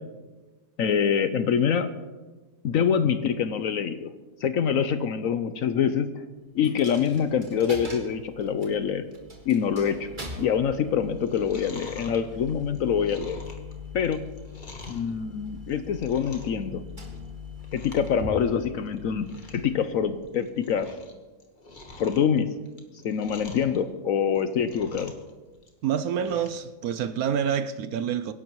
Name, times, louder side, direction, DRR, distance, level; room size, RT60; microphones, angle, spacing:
voice 1, 0.8-1.9 2.6-4.1 4.4-6.2 6.5-9.1 9.5-10.1 10.4-13.4 13.9-14.2 14.9-16.8 17.7-21.0 22.0-22.5 22.9-25.1, left 7 dB, 65° left, 11 dB, 0.9 m, -25 dB
Coin (dropping), 6.6-20.4, left 3 dB, 30° right, 2.0 m, -42 dB
Chewing mastication, 11.1-15.1 15.6-16.6 16.9-17.3 17.6-18.1 18.4-18.5 18.9-19.0 19.2-19.7 20.1-21.1 21.4-23.8 24.2-25.3 25.6-26.6 27.0-27.1, left 2 dB, 30° left, 1.5 m, -46 dB
voice 2, 25.8-28.3, right 8 dB, 70° right, 11 dB, 1.0 m, -27 dB
24.5 x 11.0 x 3.1 m, 1.2 s
omnidirectional pair, 1.8 m